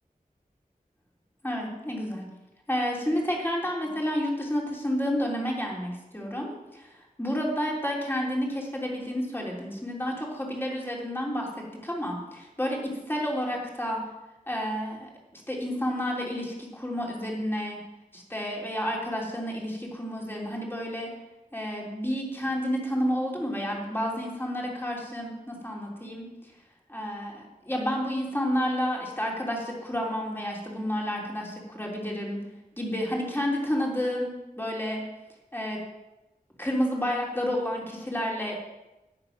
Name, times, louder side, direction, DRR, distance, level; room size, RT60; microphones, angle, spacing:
voice 1, 1.4-2.3 2.7-14.0 14.5-17.8 18.1-21.1 21.5-26.5 26.9-32.4 32.8-35.0 35.5-35.8 36.6-38.6, equal, 15° left, -2 dB, 3.4 m, -30 dB
10.5 x 8.4 x 6.0 m, 1.0 s
wide cardioid pair, 50°, 15 cm